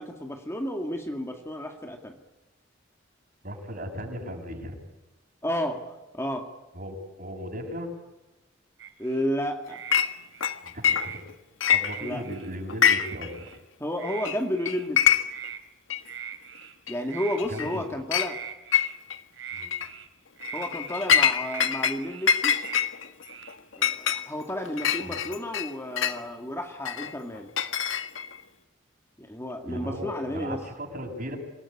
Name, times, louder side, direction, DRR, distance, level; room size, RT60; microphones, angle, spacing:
voice 1, 0.0-2.2 5.4-5.8 6.1-6.5 9.0-9.8 12.0-12.2 13.8-15.1 16.9-18.4 20.5-22.6 23.8-27.5 29.2-30.6, left 1 dB, 15° left, 3 dB, 2.1 m, -32 dB
voice 2, 3.4-4.8 6.7-7.9 10.7-11.0 11.7-13.3 17.5-17.8 19.5-19.7 25.0-25.2 29.6-31.4, equal, 45° right, 2 dB, 7.1 m, -36 dB
sound 1, 8.8-9.3 9.7-10.0 10.3-11.2 11.8-12.5 12.8-13.6 14.0-14.3 14.6-14.9 15.3-15.6 16.0-16.7 17.1-17.9 18.2-19.0 19.3-20.1 20.4-21.1 21.4-21.7 22.0-22.3 22.6-22.9 23.2-23.9, right 8 dB, 75° right, 3.2 m, -41 dB
Chink clink, 9.9-10.1 10.4-11.3 11.6-12.3 12.7-13.3 13.5-13.6 14.2-14.4 14.6-15.5 15.9-16.0 16.9-17.0 17.4-17.7 18.1-18.3 18.7-19.2 19.6-19.9 20.4-22.0 22.3-26.2 26.8-28.4, left 8 dB, 85° left, 1.6 m, -24 dB
27.0 x 19.5 x 9.9 m, 1.0 s
head